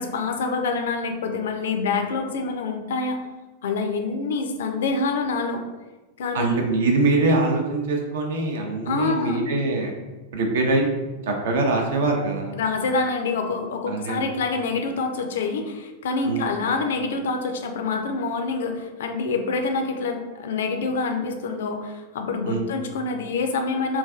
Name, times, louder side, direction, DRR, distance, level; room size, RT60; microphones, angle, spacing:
voice 1, 0.0-3.2 3.6-5.6 6.2-6.6 8.9-9.4 12.5-24.0, left 4 dB, 60° left, 5 dB, 0.3 m, -26 dB
voice 2, 6.3-9.9 10.3-10.9 11.3-12.5 13.9-14.2 16.2-16.5 22.4-22.7, right 2 dB, 60° right, 2 dB, 0.5 m, -23 dB
3.2 x 2.4 x 2.3 m, 1.2 s
figure-of-eight pair, 90°, 0 cm